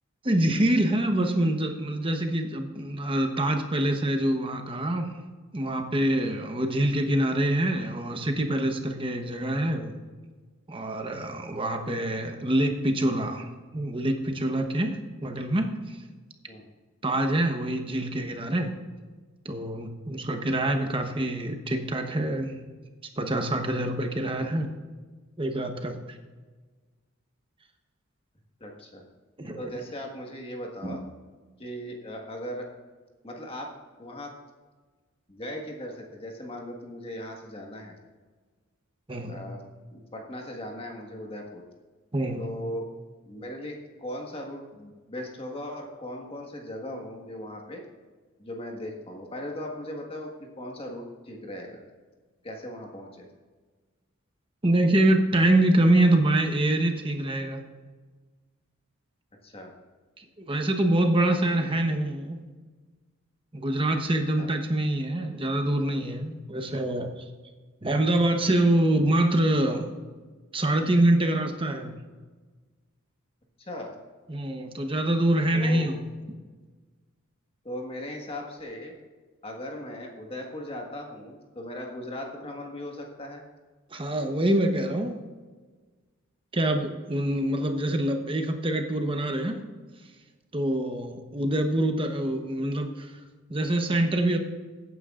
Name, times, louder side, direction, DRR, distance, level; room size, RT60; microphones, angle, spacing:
voice 1, 0.2-5.2 5.5-9.9 10.7-13.5 13.7-16.0 17.0-18.7 19.4-22.6 23.2-24.7 25.4-25.9 29.4-29.7 30.8-31.0 39.1-39.4 42.1-42.4 54.6-57.6 60.2-62.4 63.5-67.2 67.8-69.9 70.5-71.9 74.3-76.0 83.9-85.2 86.5-89.6 90.5-93.2 93.5-94.4, right 1 dB, 25° right, 5 dB, 1.0 m, -25 dB
voice 2, 28.6-29.0 29.5-31.0 31.6-32.7 33.2-33.7 34.0-34.3 35.3-37.9 39.3-39.6 39.9-41.6 42.4-42.9 43.3-47.8 48.4-50.3 50.5-51.8 52.4-53.3 59.4-59.7 64.4-64.5 73.6-73.9 75.5-76.0 77.6-78.9 79.4-83.4, left 1 dB, 25° left, 1 dB, 1.5 m, -38 dB
16.0 x 9.4 x 2.5 m, 1.4 s
head